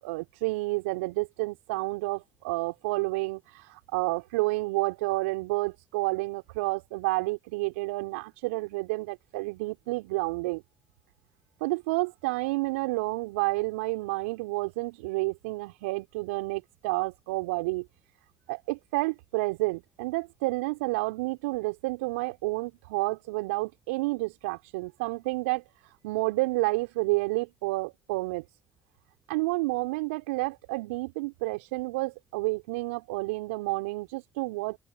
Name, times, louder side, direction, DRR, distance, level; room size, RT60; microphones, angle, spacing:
voice 1, 0.0-10.6 11.6-17.9 18.5-25.6 26.0-28.4 29.3-34.8, right 23 dB, 75° right, 4.6 m, -30 dB
figure-of-eight pair, 45°, 7 cm